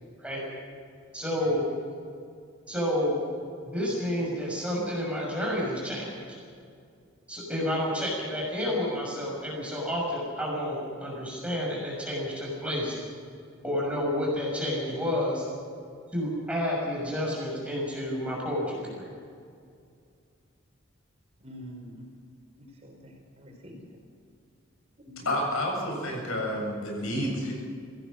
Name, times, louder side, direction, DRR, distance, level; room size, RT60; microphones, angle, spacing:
voice 1, 1.1-1.7 2.7-3.2 3.6-6.1 7.3-12.9 13.6-15.4 16.1-19.1, left 1 dB, 5° right, -4 dB, 6.3 m, -30 dB
voice 2, 21.4-22.1 22.6-23.8 25.0-25.3, equal, 30° right, 0 dB, 5.5 m, -46 dB
voice 3, 25.2-27.5, left 1 dB, 90° left, 1 dB, 7.7 m, -29 dB
26.0 x 16.5 x 6.4 m, 2.3 s
head